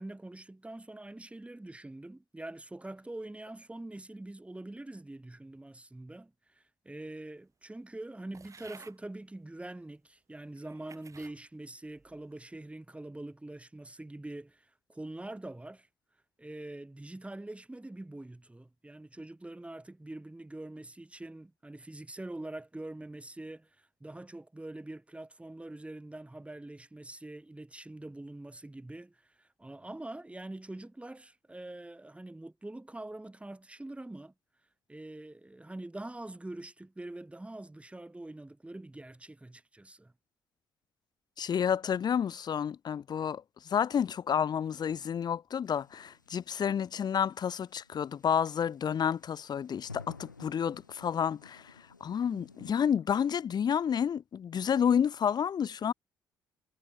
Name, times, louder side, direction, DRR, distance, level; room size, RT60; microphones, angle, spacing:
voice 1, 0.0-15.9 16.4-34.3 34.9-40.1, right 2 dB, 10° right, 4.1 m, -44 dB
sound 1, 8.3-9.0 9.8-9.9 10.6-11.4 11.9-12.3, right 5 dB, 30° right, 2.9 m, -54 dB
voice 2, 41.4-51.7 52.0-55.9, left 8 dB, 45° left, 1.1 m, -30 dB
sound 2, 45.7-52.8, left 4 dB, 90° left, 5.4 m, -53 dB
figure-of-eight pair, 45°, 10 cm